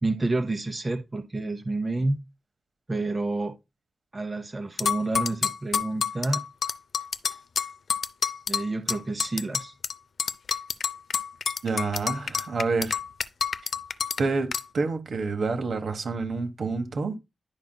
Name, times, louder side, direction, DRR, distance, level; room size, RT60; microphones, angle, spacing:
voice 1, 0.0-2.2 2.9-3.5 4.1-6.4 8.5-9.7, right 2 dB, 30° right, 0.7 m, -29 dB
sound 1, 4.8-9.9 10.2-14.2 14.5-14.6, left 6 dB, 75° left, 0.4 m, -28 dB
voice 2, 11.6-13.0 13.6-13.7 14.2-14.5 14.7-17.1, right 4 dB, 70° right, 1.2 m, -28 dB
10.5 x 4.9 x 2.2 m
wide cardioid pair, 115°, 0 cm